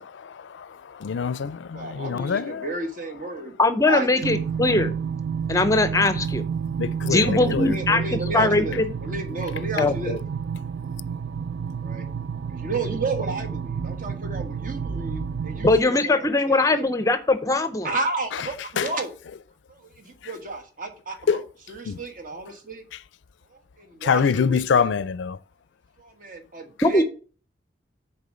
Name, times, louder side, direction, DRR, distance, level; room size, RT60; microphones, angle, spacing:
voice 1, 1.0-2.6 6.8-7.6 18.8-18.9 21.3-21.4 21.9-22.0 24.0-25.4, left 6 dB, 85° left, 0.4 m, -24 dB
voice 2, 1.7-3.5 3.9-4.3 5.9-6.0 7.1-10.2 11.8-12.1 12.5-16.9 17.8-19.1 19.7-22.8 23.8-24.9 26.0-27.0, right 2 dB, 45° right, 1.3 m, -32 dB
voice 3, 3.6-5.0 5.5-6.4 7.1-8.8 9.8-10.2 15.6-17.9 26.8-27.0, left 2 dB, 20° left, 0.6 m, -21 dB
sound 1, 4.2-15.8, right 6 dB, 75° right, 0.3 m, -30 dB
6.8 x 4.4 x 6.4 m
head